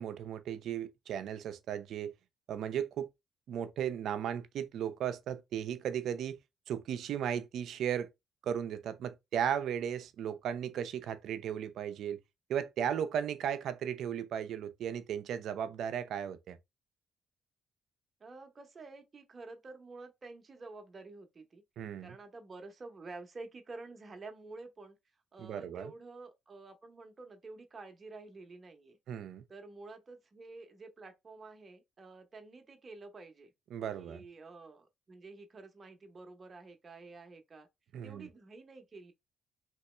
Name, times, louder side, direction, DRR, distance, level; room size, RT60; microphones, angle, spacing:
voice 1, 0.0-2.1 2.5-3.1 3.5-6.4 6.7-8.1 8.4-12.2 12.5-16.6 21.8-22.2 25.4-25.9 29.1-29.4 33.7-34.2 37.9-38.3, right 9 dB, 75° right, 0.5 m, -36 dB
voice 2, 18.2-21.6 22.0-25.0 25.3-29.0 29.5-33.5 33.9-37.7 38.0-39.1, right 3 dB, 35° right, 0.8 m, -50 dB
3.0 x 2.8 x 3.1 m
cardioid pair, 90°, 0 cm